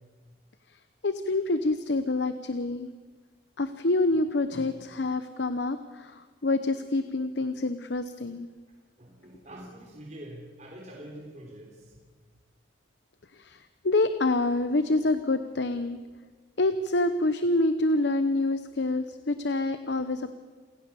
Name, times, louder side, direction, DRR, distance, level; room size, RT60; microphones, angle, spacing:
voice 1, 1.0-2.9 3.6-8.5 13.3-16.0 16.6-20.3, left 2 dB, 65° left, 10 dB, 0.9 m, -27 dB
voice 2, 9.0-12.0, right 1 dB, 40° right, -2 dB, 3.7 m, -45 dB
28.0 x 17.0 x 7.0 m, 1.5 s
head